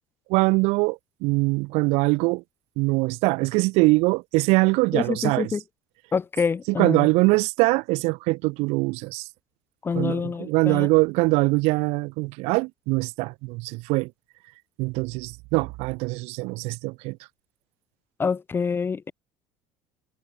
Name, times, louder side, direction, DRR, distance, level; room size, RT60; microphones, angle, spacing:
voice 1, 0.3-2.4 2.8-5.6 6.7-9.3 9.9-14.1 14.8-17.2, right 25 dB, 70° right, 6.1 m, -23 dB
voice 2, 4.9-5.6 6.1-7.1 9.8-10.9 18.2-19.1, left 5 dB, 20° left, 0.9 m, -26 dB
cardioid pair, 130°, 11 cm